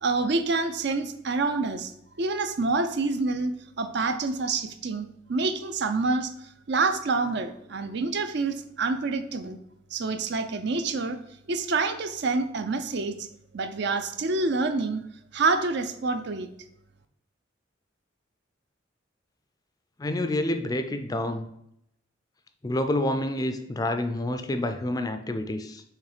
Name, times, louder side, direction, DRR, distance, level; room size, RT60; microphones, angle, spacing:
voice 1, 0.0-1.9 2.2-6.3 6.7-9.6 9.9-11.2 11.5-13.3 13.5-15.0 15.3-16.5, right 3 dB, 60° right, 9 dB, 0.5 m, -27 dB
voice 2, 20.0-21.4 22.6-25.8, left 1 dB, 20° left, 8 dB, 0.4 m, -28 dB
6.6 x 3.1 x 4.9 m, 0.76 s
head